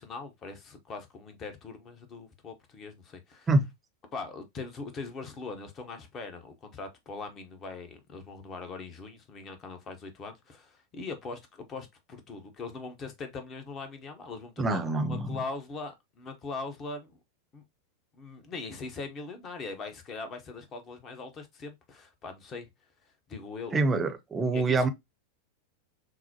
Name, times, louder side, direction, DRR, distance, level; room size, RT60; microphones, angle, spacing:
voice 1, 0.0-3.5 4.1-17.2 17.5-17.6 18.1-22.7 23.3-23.8 24.5-24.9, left 4 dB, 30° left, 1.0 m, -41 dB
voice 2, 14.6-15.4 23.7-24.9, right 3 dB, 15° right, 0.7 m, -26 dB
5.9 x 2.1 x 2.9 m
figure-of-eight pair, 90°, 0 cm